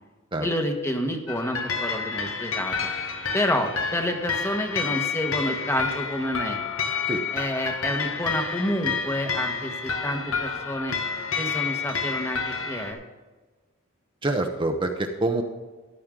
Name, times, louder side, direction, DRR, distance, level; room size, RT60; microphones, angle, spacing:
voice 1, 0.4-2.7 3.3-6.6 7.3-10.9 11.4-13.0, left 1 dB, 15° left, 4 dB, 1.3 m, -29 dB
sound 1, 1.3-12.9, left 5 dB, 80° left, 1.7 m, -29 dB
voice 2, 14.2-15.4, right 2 dB, 25° right, 3 dB, 0.9 m, -26 dB
14.0 x 11.5 x 3.8 m, 1.3 s
head